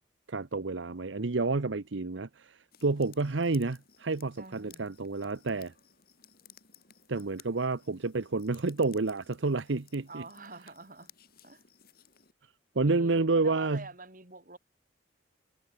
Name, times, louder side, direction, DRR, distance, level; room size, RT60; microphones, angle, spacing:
voice 1, 0.3-5.7 7.1-10.2 12.7-13.8, right 3 dB, 75° right, 0.9 m, -29 dB
sound 1, 2.7-12.3, left 9 dB, 50° left, 7.7 m, -59 dB
voice 2, 4.4-4.9 10.1-11.1 11.4-11.6 12.8-14.6, right 3 dB, 45° right, 3.9 m, -47 dB
head